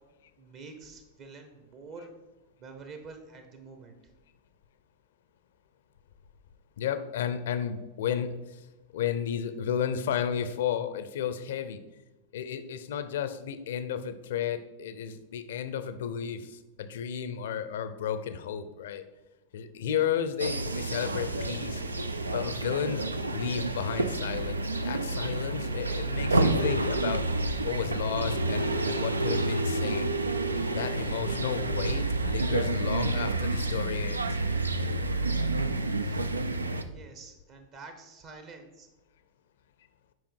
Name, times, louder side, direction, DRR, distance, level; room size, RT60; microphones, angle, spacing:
voice 1, 0.4-2.1 2.6-4.0 36.0-36.2 36.9-38.9, right 4 dB, 40° right, 5 dB, 1.0 m, -47 dB
voice 2, 6.8-8.3 8.9-11.8 12.3-16.5 16.8-19.0 19.5-21.8 22.3-27.2 27.6-30.1 30.7-34.3, left 8 dB, 60° left, 11 dB, 0.6 m, -33 dB
sound 1, 20.4-36.8, right 2 dB, 80° right, 0.4 m, -29 dB
7.8 x 5.1 x 4.4 m, 1.1 s
figure-of-eight pair, 90°, 0 cm